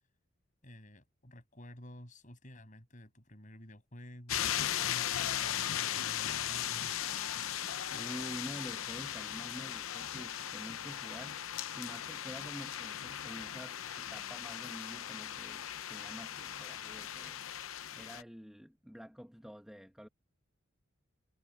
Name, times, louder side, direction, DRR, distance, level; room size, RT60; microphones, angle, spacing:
voice 1, 0.6-6.9, equal, 40° left, 8.0 m, -52 dB
sound 1, 4.3-18.2, left 10 dB, 85° left, 0.7 m, -38 dB
voice 2, 7.9-11.4 11.7-17.5 17.9-20.1, equal, 5° right, 1.5 m, -48 dB
head